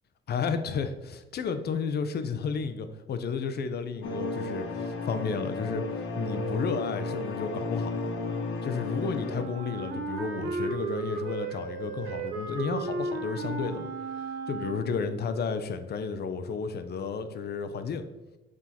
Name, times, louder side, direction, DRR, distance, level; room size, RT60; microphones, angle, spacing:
voice 1, 0.3-5.8 6.2-8.1 8.6-13.9 14.5-18.0, left 5 dB, 55° left, 9 dB, 0.6 m, -32 dB
sound 1, 4.0-9.4, left 2 dB, 80° left, 0.9 m, -33 dB
Wind instrument woodwind instrument, 9.3-15.2, right 3 dB, 85° right, 0.9 m, -34 dB
6.1 x 3.7 x 4.3 m, 1.0 s
cardioid pair, 90°, 20 cm